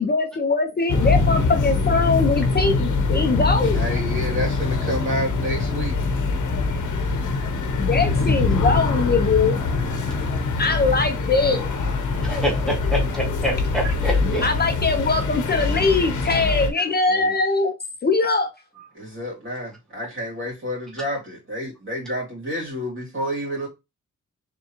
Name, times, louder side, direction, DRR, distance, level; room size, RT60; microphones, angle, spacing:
voice 1, 0.0-3.8 7.8-9.6 10.6-11.7 14.2-17.7 18.0-18.5, left 4 dB, 35° left, 0.6 m, -21 dB
sound 1, 0.9-16.7, left 3 dB, 75° left, 0.9 m, -23 dB
voice 2, 3.7-6.0 10.3-10.5 13.8-13.9 17.1-17.3 18.9-23.7, equal, 40° right, 2.8 m, -29 dB
voice 3, 12.2-14.4, equal, ahead, 1.5 m, -26 dB
3.7 x 3.6 x 2.9 m
wide cardioid pair, 115°, 30 cm